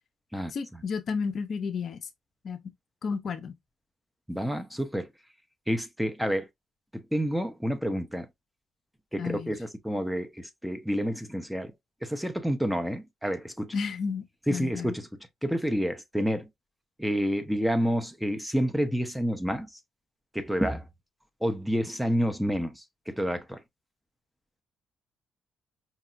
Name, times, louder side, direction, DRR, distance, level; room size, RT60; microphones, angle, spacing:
voice 1, 0.5-2.1 2.4-2.6 3.0-3.6 9.2-9.5 13.7-15.0, left 5 dB, 55° left, 0.6 m, -32 dB
voice 2, 4.3-5.1 5.7-6.5 7.1-8.3 9.1-11.7 12.0-13.7 14.5-14.9 15.4-16.5 17.0-19.7 20.3-20.8 21.4-23.6, equal, 5° right, 0.8 m, -29 dB
5.2 x 2.8 x 2.5 m
cardioid pair, 90°, 0 cm